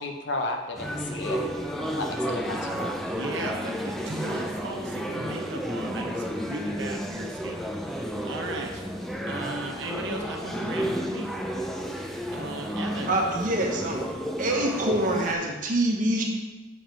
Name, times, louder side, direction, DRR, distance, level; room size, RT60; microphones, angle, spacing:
voice 1, 0.0-1.4 2.0-2.9, left 2 dB, 65° left, 3 dB, 0.8 m, -33 dB
sound 1, 0.7-15.3, equal, ahead, 0.5 m, -32 dB
voice 2, 3.0-8.8 9.3-11.3 12.3-13.2, right 2 dB, 70° right, 2 dB, 1.0 m, -36 dB
voice 3, 13.1-14.0 14.4-16.2, right 1 dB, 45° right, 1 dB, 1.1 m, -25 dB
7.2 x 4.9 x 4.5 m, 1.2 s
head